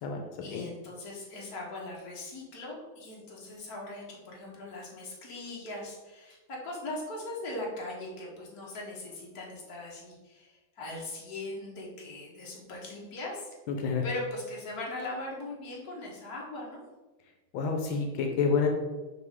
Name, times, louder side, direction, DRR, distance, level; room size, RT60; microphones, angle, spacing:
voice 1, 0.4-13.5 14.0-16.8, left 2 dB, 50° left, -3 dB, 1.9 m, -40 dB
voice 2, 13.7-14.0 17.5-18.7, left 5 dB, 85° left, 3 dB, 1.6 m, -28 dB
5.8 x 5.4 x 3.6 m, 1.1 s
omnidirectional pair, 2.2 m